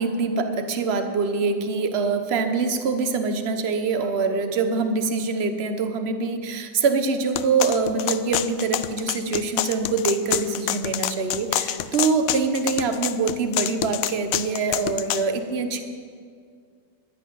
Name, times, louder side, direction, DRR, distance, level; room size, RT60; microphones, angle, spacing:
voice 1, 0.0-15.8, right 4 dB, 45° right, 7 dB, 1.2 m, -24 dB
sound 1, 7.4-15.2, left 12 dB, 70° left, 1.0 m, -27 dB
11.5 x 10.0 x 9.9 m, 2.1 s
omnidirectional pair, 1.6 m